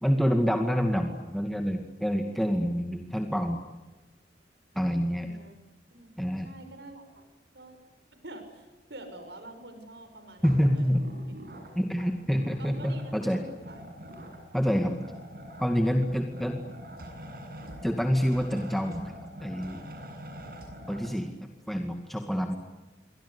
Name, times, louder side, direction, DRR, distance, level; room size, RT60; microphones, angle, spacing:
voice 1, 0.0-3.6 4.8-5.3 6.2-6.5 10.4-11.0 11.8-13.4 14.5-14.9 15.6-16.6 17.8-19.0 19.4-19.8 20.9-22.6, equal, ahead, 4 dB, 2.1 m, -27 dB
voice 2, 5.2-5.5 5.9-6.1 6.4-7.2 7.5-7.8 8.2-11.2 12.6-13.9, right 1 dB, 70° right, 7 dB, 6.0 m, -47 dB
sound 1, 10.4-21.1, equal, 55° right, 7.7 m, -45 dB
27.5 x 24.0 x 8.3 m, 1.1 s
head